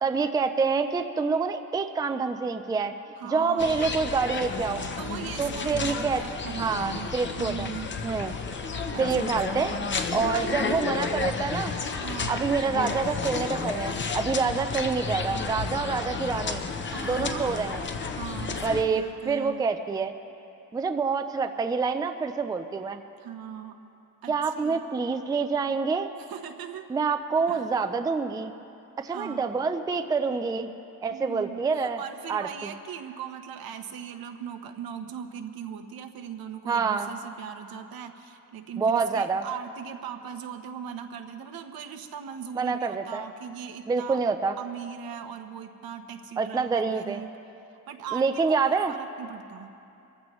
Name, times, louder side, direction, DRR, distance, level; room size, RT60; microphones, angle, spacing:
voice 1, 0.0-2.9 3.2-4.8 5.4-7.7 8.0-8.4 9.0-9.7 10.1-11.7 12.3-16.6 17.0-17.9 18.6-20.1 20.7-23.0 24.3-26.1 26.9-28.5 29.0-30.7 31.0-32.0 32.3-32.7 36.7-37.1 38.8-39.4 42.6-43.2 43.9-44.5 46.4-47.2 48.1-48.9, right 5 dB, 10° right, 7 dB, 0.4 m, -27 dB
voice 2, 3.2-3.7 5.0-7.1 7.4-7.9 8.9-9.9 12.0-12.5 15.7-15.9 16.9-17.6 18.1-19.7 23.2-23.8 24.2-24.8 26.2-26.9 27.5-27.7 29.1-29.5 31.1-44.2 44.6-47.3 47.9-49.7, right 8 dB, 75° right, 7 dB, 1.0 m, -39 dB
sound 1, 3.6-18.8, left 4 dB, 30° left, 0.7 m, -32 dB
24.0 x 15.0 x 3.1 m, 2.7 s
cardioid pair, 160°, 36 cm